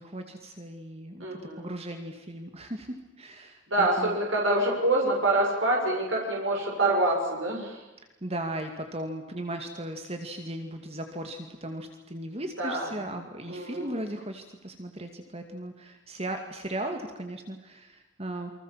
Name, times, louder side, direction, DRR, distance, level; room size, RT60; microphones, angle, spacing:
voice 1, 0.0-1.3 1.6-4.2 8.2-18.5, right 1 dB, 30° right, 5 dB, 2.4 m, -37 dB
voice 2, 1.2-1.7 3.7-7.8 12.6-12.9 13.5-14.0, right 2 dB, 80° right, -1 dB, 7.3 m, -26 dB
29.0 x 25.0 x 7.5 m, 1.0 s
head